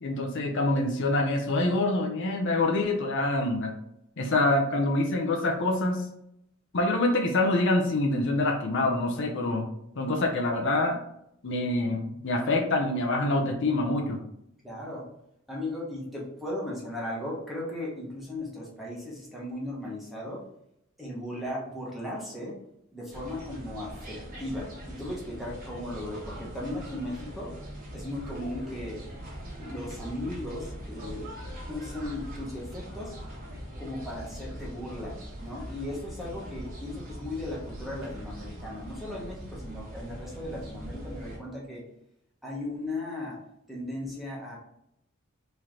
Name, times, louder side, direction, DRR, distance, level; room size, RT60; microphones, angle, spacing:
voice 1, 0.0-3.7 4.2-6.1 6.7-9.7 10.0-11.0 11.4-14.2, left 2 dB, 60° left, 1 dB, 0.6 m, -26 dB
voice 2, 14.6-15.0 15.5-20.4 21.0-22.5 22.9-27.5 27.9-29.0 29.6-31.3 31.7-33.2 33.8-41.8 42.4-43.4 43.7-44.6, left 1 dB, ahead, -5 dB, 1.1 m, -37 dB
sound 1, 23.1-41.4, equal, 45° right, 1.1 m, -41 dB
3.2 x 2.9 x 3.7 m, 0.78 s
head